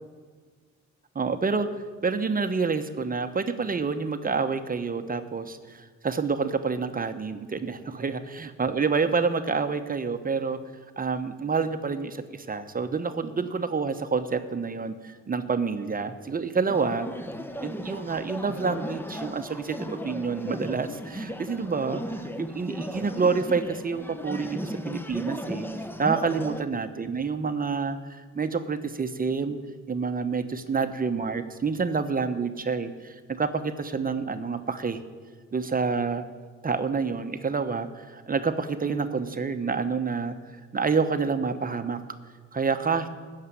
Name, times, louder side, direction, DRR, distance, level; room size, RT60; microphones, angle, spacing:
voice 1, 1.1-1.7 2.0-10.6 11.0-17.1 17.6-25.7 26.0-29.6 29.9-35.0 35.5-36.2 36.6-40.3 40.7-42.0 42.5-43.1, right 5 dB, 30° right, 9 dB, 0.9 m, -28 dB
sound 1, 16.7-26.6, equal, 5° left, 0.8 m, -36 dB
15.0 x 6.6 x 9.7 m, 1.5 s
cardioid pair, 90°, 30 cm